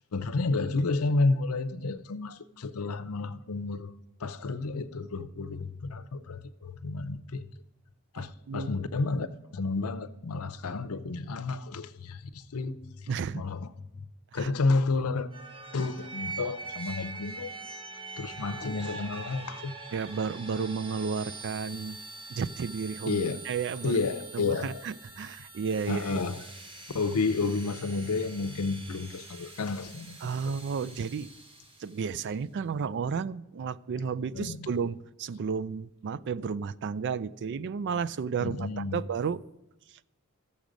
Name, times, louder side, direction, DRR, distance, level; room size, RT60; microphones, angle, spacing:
voice 1, 0.1-3.9 4.2-7.5 8.1-9.3 9.5-13.1 13.3-13.7 13.9-14.1 14.3-15.3 15.7-17.6 18.2-19.7 23.1-23.4 23.8-24.8 25.9-26.5 26.9-30.2 30.5-30.6 34.3-34.6 38.4-39.0, left 3 dB, 85° left, 0.6 m, -31 dB
voice 2, 8.2-8.7 13.1-13.4 14.3-14.5 19.9-22.0 22.3-24.0 24.3-26.0 30.2-31.3 31.8-39.4 39.9-40.0, right 6 dB, 55° right, 0.4 m, -32 dB
sound 1, 15.3-32.0, right 3 dB, 25° right, 1.1 m, -44 dB
14.5 x 7.2 x 5.1 m
head